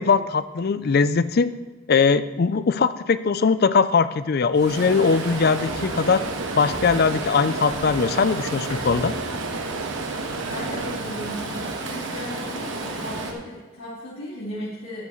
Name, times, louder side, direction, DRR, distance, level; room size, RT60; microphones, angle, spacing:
voice 1, 0.0-1.5 1.9-6.2 6.6-9.1, left 5 dB, 45° left, 14 dB, 0.4 m, -20 dB
Stream, 4.5-13.3, right 2 dB, 55° right, 1.4 m, -32 dB
sound 1, 4.8-11.0, right 4 dB, 85° right, 0.7 m, -34 dB
sound 2, 5.6-11.3, equal, 70° left, 2.4 m, -42 dB
voice 2, 10.5-15.0, equal, 85° left, -11 dB, 3.5 m, -36 dB
12.0 x 11.0 x 3.1 m, 1.3 s
head